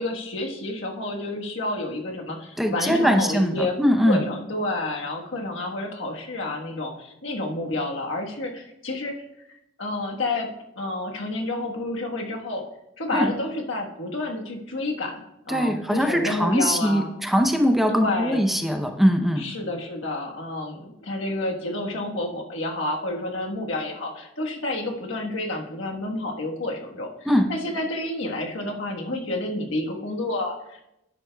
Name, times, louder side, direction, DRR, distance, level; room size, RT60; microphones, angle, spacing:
voice 1, 0.0-3.8 4.0-9.1 9.8-10.5 10.7-12.6 13.0-17.1 17.9-18.4 19.4-30.8, left 2 dB, 85° left, 1 dB, 1.3 m, -29 dB
voice 2, 2.6-4.2 13.1-13.3 15.5-19.4 27.3-27.5, equal, ahead, 4 dB, 0.6 m, -21 dB
11.0 x 9.6 x 2.3 m, 0.86 s
head